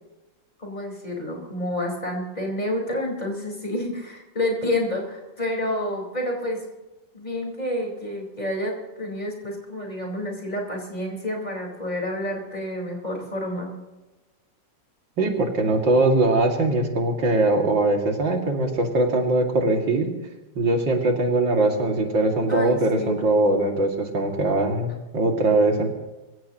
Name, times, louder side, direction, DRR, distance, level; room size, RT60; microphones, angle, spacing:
voice 1, 0.6-6.6 7.1-13.7 22.5-23.2, left 1 dB, 20° left, 0 dB, 4.6 m, -29 dB
voice 2, 15.2-20.1 20.6-25.9, right 2 dB, 80° right, 2 dB, 3.0 m, -21 dB
25.0 x 16.0 x 3.0 m, 1.1 s
omnidirectional pair, 2.0 m